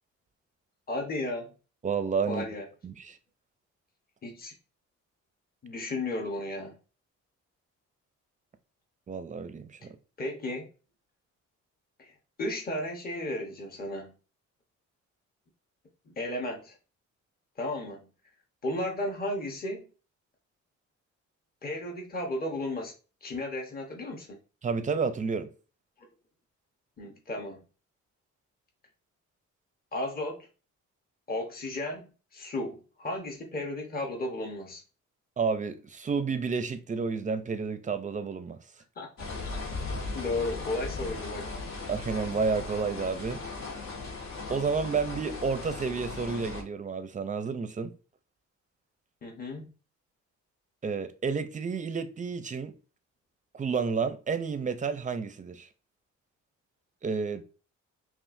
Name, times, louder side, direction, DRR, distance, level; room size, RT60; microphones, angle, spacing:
voice 1, 0.9-1.5 2.3-2.7 4.2-4.5 5.6-6.8 10.2-10.7 12.0-14.1 16.1-16.7 17.6-18.0 18.6-19.9 21.6-22.9 23.2-24.4 26.0-26.1 27.0-27.6 29.9-30.5 31.3-34.8 39.0-39.6 40.1-41.5 49.2-49.7, left 1 dB, 30° left, 1.1 m, -34 dB
voice 2, 1.8-2.4 2.8-3.2 9.1-9.9 24.6-25.5 35.4-38.6 41.9-43.4 44.5-47.9 50.8-52.7 53.5-55.7 57.0-57.4, right 5 dB, 25° right, 0.6 m, -30 dB
sound 1, 39.2-46.6, left 3 dB, 65° left, 1.6 m, -37 dB
5.5 x 2.5 x 2.6 m
cardioid pair, 90°, 30 cm